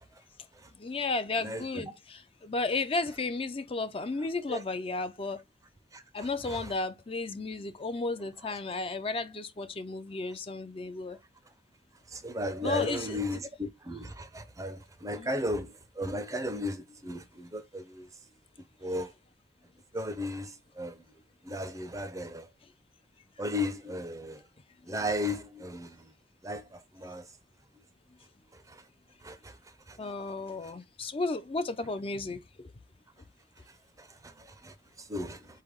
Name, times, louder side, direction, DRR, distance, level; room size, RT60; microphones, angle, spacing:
voice 1, 0.8-5.4 6.1-11.2 12.6-13.2 15.2-15.3 30.0-32.7, left 3 dB, 30° left, 0.4 m, -33 dB
voice 2, 1.4-1.8 4.5-4.6 5.9-6.6 12.1-18.1 18.8-19.1 19.9-21.0 21.4-22.5 23.4-24.4 24.9-26.0 26.4-27.2 28.7-28.8 29.2-29.5 29.9-30.0 34.0-34.7 35.1-35.5, left 1 dB, 20° right, 0.5 m, -35 dB
4.3 x 3.3 x 3.4 m
head